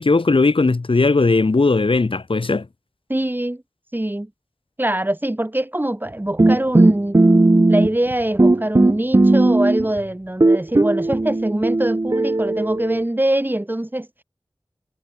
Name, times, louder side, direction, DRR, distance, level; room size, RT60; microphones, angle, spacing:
voice 1, 0.0-2.7, left 3 dB, 70° left, 1.7 m, -17 dB
voice 2, 3.1-3.6 3.9-4.3 4.8-7.2 7.7-14.1, right 1 dB, 20° right, 1.4 m, -23 dB
sound 1, 6.4-8.1 8.4-10.0 10.4-13.1, right 2 dB, 40° right, 1.3 m, -16 dB
wide cardioid pair, 50°, 9 cm